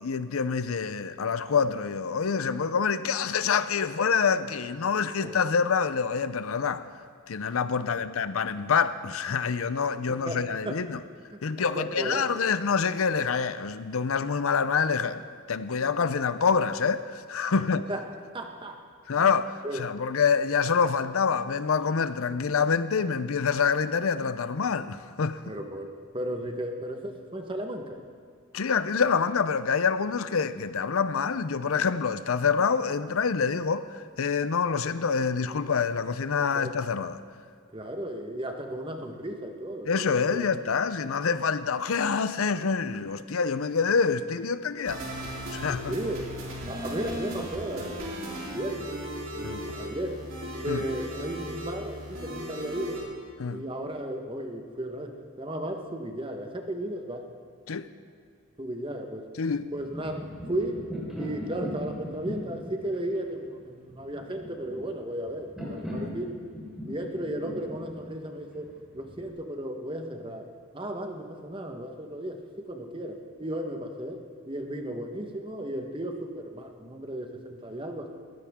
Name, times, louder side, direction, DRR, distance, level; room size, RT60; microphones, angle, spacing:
voice 1, 0.0-6.9 7.3-11.0 11.4-15.2 15.5-17.9 19.1-25.4 28.5-37.2 39.9-45.0 45.5-45.9 49.4-49.6 50.7-50.8 53.4-53.6 57.7-57.9 59.4-59.7 66.0-66.2, left 5 dB, 75° left, 0.6 m, -26 dB
voice 2, 10.1-10.8 11.3-12.3 17.5-18.0 18.3-18.8 19.1-19.3 19.6-19.8 25.4-28.0 36.4-36.7 37.7-40.5 45.9-46.3 46.7-48.9 49.3-50.2 50.6-53.1 53.5-57.3 58.6-59.3 59.7-60.8 61.1-66.4 66.9-70.5 70.7-78.1, right 1 dB, 25° right, 1.2 m, -35 dB
sound 1, 44.9-53.0, equal, 65° right, 3.6 m, -37 dB
sound 2, 59.7-69.3, equal, 5° right, 4.6 m, -39 dB
20.0 x 15.5 x 3.6 m
head